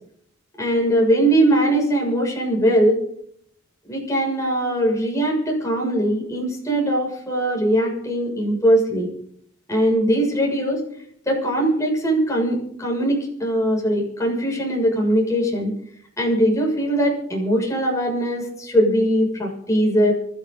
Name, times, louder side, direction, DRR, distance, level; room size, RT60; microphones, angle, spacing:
voice 1, 0.6-3.0 3.9-9.1 9.7-10.8 11.2-15.7 16.2-20.1, right 1 dB, 15° left, -1 dB, 6.7 m, -20 dB
25.5 x 13.5 x 4.0 m, 0.67 s
head